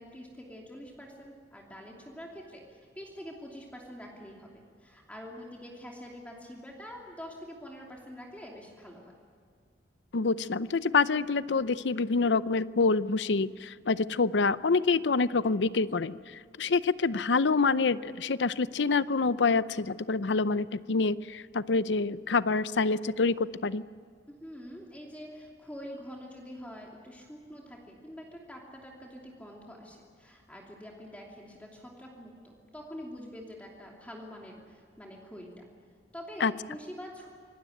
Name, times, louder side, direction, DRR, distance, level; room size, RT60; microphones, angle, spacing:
voice 1, 0.0-9.1 24.3-35.7 36.1-37.3, equal, 10° left, -1 dB, 2.8 m, -45 dB
voice 2, 10.1-23.8 36.4-36.5, left 4 dB, 80° left, 16 dB, 0.7 m, -27 dB
25.0 x 19.0 x 9.1 m, 2.2 s
head